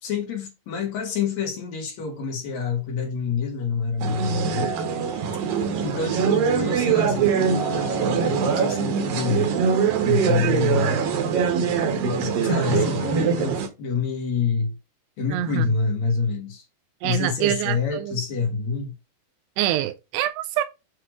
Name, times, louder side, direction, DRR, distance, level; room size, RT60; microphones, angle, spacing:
voice 1, 0.0-4.7 5.8-9.5 10.0-11.0 12.0-14.7 15.2-16.6 17.0-18.9, left 5 dB, 55° left, 2.2 m, -27 dB
sound 1, 4.0-13.7, right 6 dB, 65° right, 2.6 m, -23 dB
voice 2, 15.3-15.7 17.0-18.2 19.6-20.6, right 13 dB, 80° right, 2.6 m, -25 dB
7.8 x 3.1 x 4.6 m
omnidirectional pair, 4.9 m